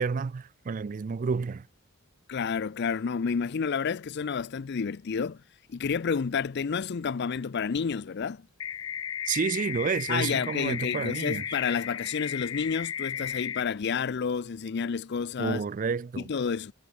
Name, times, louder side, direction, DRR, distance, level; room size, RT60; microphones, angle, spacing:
voice 1, 0.0-1.7 9.3-11.4 15.4-16.3, right 5 dB, 40° right, 0.3 m, -30 dB
voice 2, 2.3-5.4 5.7-8.5 10.1-15.6 16.3-16.7, left 6 dB, 50° left, 0.4 m, -30 dB
sound 1, 8.6-13.6, left 9 dB, 70° left, 1.9 m, -34 dB
head